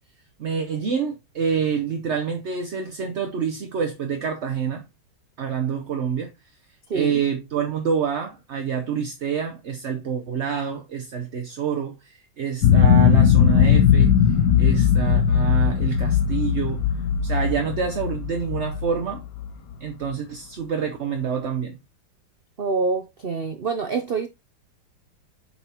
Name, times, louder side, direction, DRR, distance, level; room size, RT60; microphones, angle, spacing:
voice 1, 0.4-4.8 5.4-6.3 6.9-16.8 17.2-19.2 19.8-21.8, right 7 dB, 50° right, 0.8 m, -27 dB
voice 2, 6.9-7.2 22.6-24.3, right 4 dB, 85° right, 0.5 m, -26 dB
sound 1, 12.6-19.7, left 8 dB, 70° left, 1.4 m, -18 dB
7.9 x 5.6 x 2.9 m
omnidirectional pair, 1.9 m